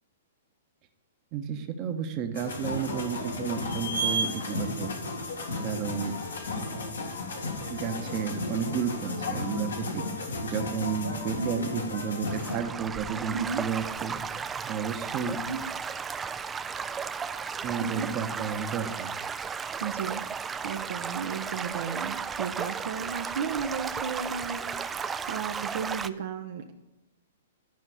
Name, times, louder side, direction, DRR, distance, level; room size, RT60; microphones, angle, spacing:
voice 1, 1.3-4.9 5.6-6.1 7.7-10.0 10.4-14.1 14.7-15.4 17.6-19.1, right 7 dB, 40° right, 6 dB, 1.1 m, -32 dB
sound 1, 2.3-12.6, left 1 dB, 85° left, 2.0 m, -33 dB
voice 2, 11.4-11.7 13.3-13.6 15.2-15.6 17.8-18.1 19.8-20.2 20.6-26.7, right 6 dB, 65° right, 5 dB, 0.7 m, -34 dB
Stream / Gurgling / Trickle dribble, 12.3-26.1, right 6 dB, 15° right, 0.4 m, -34 dB
11.5 x 5.3 x 4.8 m, 0.96 s
hypercardioid pair, 120°, 0 cm